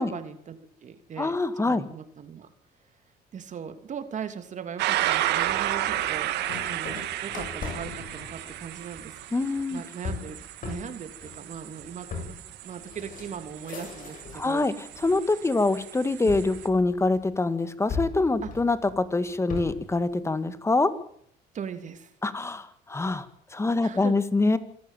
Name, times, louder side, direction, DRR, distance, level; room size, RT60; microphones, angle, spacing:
voice 1, 0.0-2.5 3.3-6.3 6.7-9.2 9.7-12.4 12.6-14.7 16.2-16.3 18.4-18.5 21.5-22.1 23.8-24.2, right 7 dB, 45° right, 9 dB, 3.0 m, -39 dB
voice 2, 1.2-1.8 9.3-9.8 14.3-14.7 15.0-20.9 22.2-23.3 23.5-24.6, left 3 dB, 15° left, 13 dB, 2.1 m, -25 dB
sound 1, 4.8-16.7, right 14 dB, 85° right, 2.1 m, -33 dB
sound 2, 5.4-14.5 14.9-15.6 16.3-17.4 17.9-20.0, left 5 dB, 50° left, 7.4 m, -39 dB
26.5 x 15.0 x 9.2 m, 0.68 s
cardioid pair, 110°, 17 cm